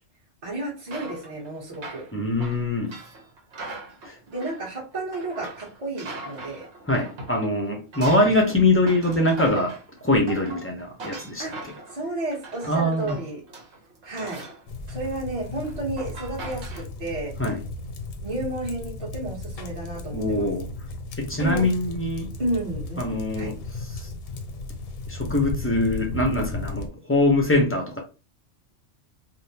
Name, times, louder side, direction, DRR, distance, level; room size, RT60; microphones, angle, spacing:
voice 1, 0.4-2.0 4.3-6.7 11.4-11.5 11.9-13.4 14.0-14.4 14.9-17.3 18.2-20.5 21.4-21.6 22.4-23.5, right 2 dB, 30° right, 1.1 m, -32 dB
sound 1, 0.9-7.4 7.7-16.8, right 2 dB, 65° right, 1.1 m, -41 dB
voice 2, 2.1-3.0 4.0-4.2 6.9-11.5 12.7-13.2 17.4-17.6 20.1-20.7 21.2-22.3 23.0-24.1 25.1-28.0, left 1 dB, 20° left, 0.4 m, -23 dB
sound 2, 14.7-26.9, left 2 dB, 60° left, 0.7 m, -35 dB
3.4 x 2.1 x 2.7 m
omnidirectional pair, 1.3 m